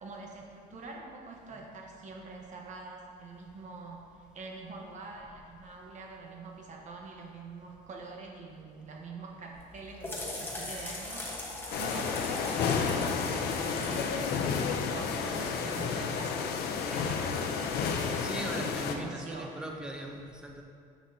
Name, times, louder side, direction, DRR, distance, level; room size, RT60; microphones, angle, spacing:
voice 1, 0.0-14.4 14.9-16.5 16.9-19.7, right 3 dB, 45° right, 0 dB, 1.1 m, -45 dB
sound 1, 9.5-15.1, left 2 dB, 15° left, 1.1 m, -40 dB
sound 2, 11.7-18.9, left 5 dB, 70° left, 0.6 m, -31 dB
voice 2, 18.1-20.6, right 1 dB, 5° right, 1 dB, 0.7 m, -40 dB
7.4 x 6.0 x 2.7 m, 2.2 s
cardioid pair, 110°, 17 cm